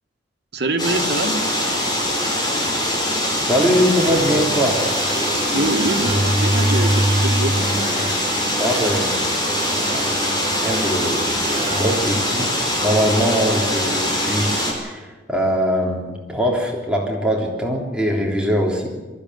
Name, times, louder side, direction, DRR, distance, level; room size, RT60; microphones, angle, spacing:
voice 1, 0.5-1.3 5.5-7.6, right 2 dB, 65° right, 4 dB, 2.0 m, -24 dB
sound 1, 0.8-14.7, left 1 dB, 25° left, 5.6 m, -22 dB
voice 2, 3.5-4.8 8.6-9.2 9.9-11.2 11.7-12.5 12.8-18.9, equal, 5° right, -2 dB, 3.4 m, -22 dB
sound 2, 3.8-13.2, right 1 dB, 20° right, 1.2 m, -26 dB
23.0 x 14.5 x 9.5 m, 1.2 s
head